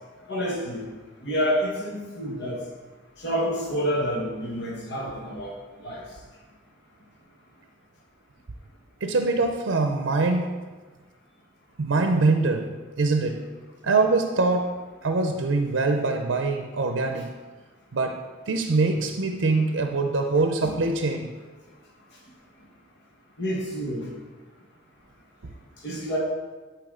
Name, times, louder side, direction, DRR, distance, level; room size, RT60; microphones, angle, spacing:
voice 1, 0.3-0.9 1.2-2.6 3.2-6.0 20.6-20.7 23.4-24.1 25.8-26.2, equal, 60° left, -3 dB, 1.4 m, -28 dB
voice 2, 9.0-10.6 11.8-13.5 13.8-17.3 17.9-21.3, right 3 dB, 85° right, 5 dB, 0.6 m, -24 dB
11.0 x 4.7 x 3.7 m, 1.3 s
head